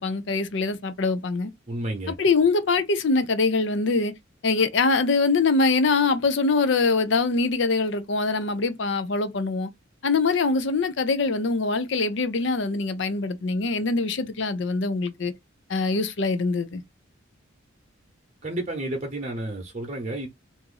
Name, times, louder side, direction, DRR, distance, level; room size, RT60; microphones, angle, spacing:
voice 1, 0.0-1.5 2.1-4.1 4.4-9.7 10.0-15.3 15.7-16.8, left 3 dB, 60° left, 0.5 m, -23 dB
voice 2, 1.7-2.1 18.4-20.3, right 1 dB, 35° right, 0.8 m, -31 dB
2.9 x 2.6 x 3.7 m
head